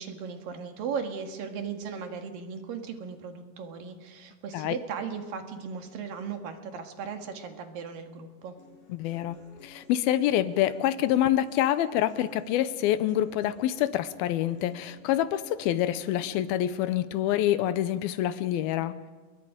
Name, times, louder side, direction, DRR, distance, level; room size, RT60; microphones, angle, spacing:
voice 1, 0.0-8.5, right 6 dB, 70° right, 5 dB, 3.4 m, -37 dB
Human voice / Acoustic guitar, 8.6-16.6, left 2 dB, 55° left, 9.1 m, -54 dB
voice 2, 8.9-9.4 9.6-19.0, left 12 dB, 80° left, 14 dB, 2.6 m, -26 dB
28.0 x 22.5 x 5.1 m, 1.4 s
omnidirectional pair, 4.4 m